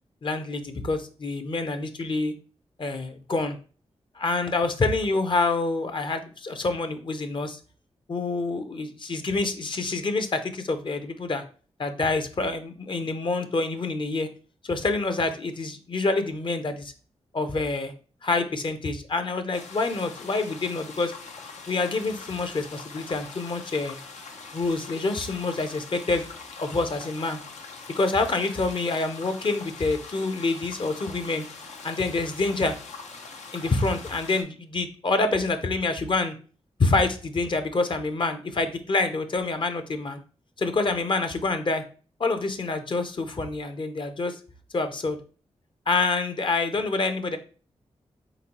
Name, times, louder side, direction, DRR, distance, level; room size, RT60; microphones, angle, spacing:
voice 1, 0.2-2.3 2.8-3.6 4.2-7.6 8.1-11.4 11.8-14.3 14.6-16.9 17.3-17.9 18.2-21.1 21.7-24.0 24.5-26.3 26.6-27.4 28.0-31.5 31.8-32.8 33.5-36.3 36.8-40.2 40.6-41.8 42.2-44.4 44.7-45.2 45.9-47.4, left 3 dB, 45° left, 8 dB, 0.6 m, -27 dB
sound 1, 19.5-34.4, left 4 dB, 85° left, 0.6 m, -43 dB
3.9 x 3.7 x 2.9 m, 0.38 s
cardioid pair, 75°, 12 cm